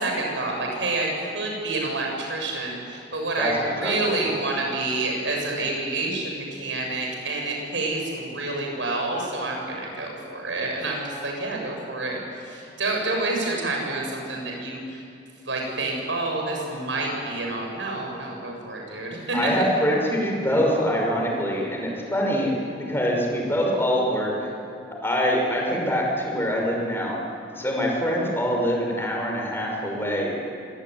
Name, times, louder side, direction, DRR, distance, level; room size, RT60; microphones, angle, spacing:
voice 1, 0.0-15.0 15.4-19.5, right 2 dB, 85° right, 0 dB, 7.9 m, -28 dB
voice 2, 3.8-4.2 19.3-22.5 22.9-24.5 25.0-27.2 27.6-30.4, equal, 15° left, -1 dB, 6.0 m, -24 dB
26.0 x 19.5 x 9.9 m, 2.5 s
head